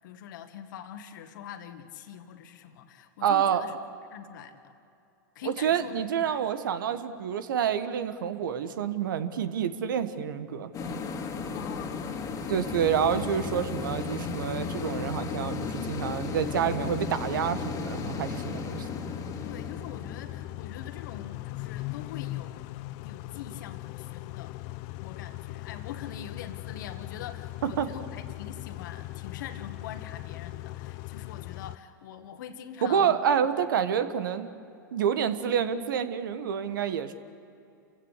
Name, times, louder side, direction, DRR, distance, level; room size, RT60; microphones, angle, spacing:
voice 1, 0.0-4.7 5.4-6.0 6.3-6.4 11.5-12.1 19.4-22.7 23.0-24.6 25.0-33.2, left 9 dB, 65° left, 8 dB, 1.8 m, -44 dB
voice 2, 3.2-3.6 5.4-10.7 12.5-18.9 27.6-27.9 32.8-34.5 34.9-37.1, right 8 dB, 75° right, 11 dB, 1.4 m, -28 dB
sound 1, 10.7-21.3, left 4 dB, 30° left, 2.3 m, -35 dB
Car / Idling / Accelerating revving vroom, 12.7-31.8, left 18 dB, 50° left, 0.7 m, -39 dB
29.0 x 16.0 x 8.3 m, 2.6 s
hypercardioid pair, 105°, 11 cm